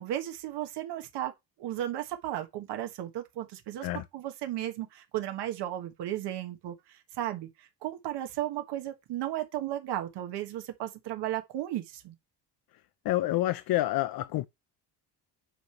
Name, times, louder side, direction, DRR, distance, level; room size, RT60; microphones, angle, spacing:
voice 1, 0.0-1.3 1.6-12.1, right 13 dB, 75° right, 1.4 m, -35 dB
voice 2, 13.0-14.5, left 15 dB, 60° left, 0.6 m, -28 dB
9.1 x 3.3 x 5.7 m
cardioid pair, 160°, 41 cm